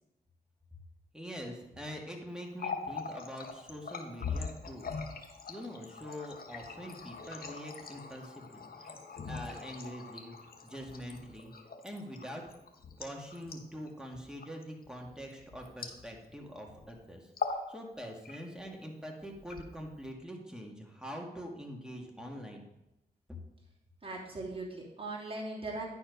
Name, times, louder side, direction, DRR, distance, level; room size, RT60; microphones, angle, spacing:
voice 1, 1.1-4.9 5.5-9.0 9.3-10.3 10.6-11.5 11.8-12.4 13.0-17.2 17.7-22.6, equal, 5° right, 0 dB, 2.0 m, -44 dB
Water tap faucet, 2.4-16.4 16.7-16.9 17.3-17.7 18.0-18.7 19.3-20.1, left 5 dB, 60° left, 1.2 m, -42 dB
voice 2, 24.0-25.8, right 2 dB, 35° right, -4 dB, 2.8 m, -39 dB
10.0 x 4.4 x 5.3 m, 0.92 s
cardioid pair, 50°, 17 cm